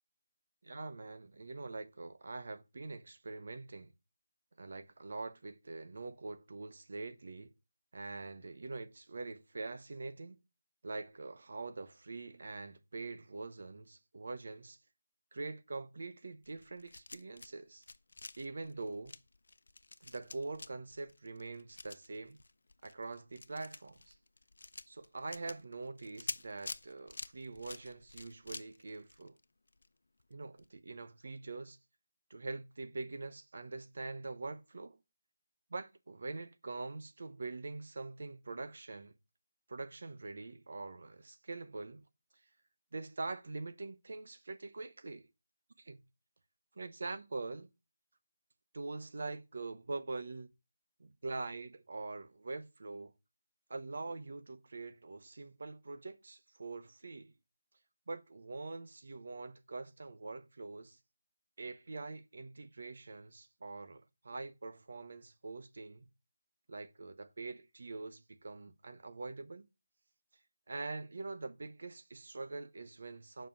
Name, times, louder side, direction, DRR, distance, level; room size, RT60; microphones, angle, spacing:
voice 1, 0.6-3.9 4.6-7.5 7.9-10.4 10.8-14.8 15.3-17.8 18.4-19.2 20.0-22.4 22.8-24.1 24.9-29.3 30.3-31.8 32.3-35.0 35.7-39.1 39.7-42.0 42.9-45.3 45.8-46.0 46.8-47.7 48.7-50.5 51.0-53.1 53.7-57.3 58.1-61.0 61.6-66.1 66.7-69.7 70.7-73.5, right 3 dB, 55° right, 0.8 m, -44 dB
sound 1, 16.4-17.5 17.8-29.9 30.2-30.3 30.6-30.7, left 3 dB, 75° left, 0.8 m, -48 dB
7.4 x 5.6 x 7.1 m
figure-of-eight pair, 175°, 0 cm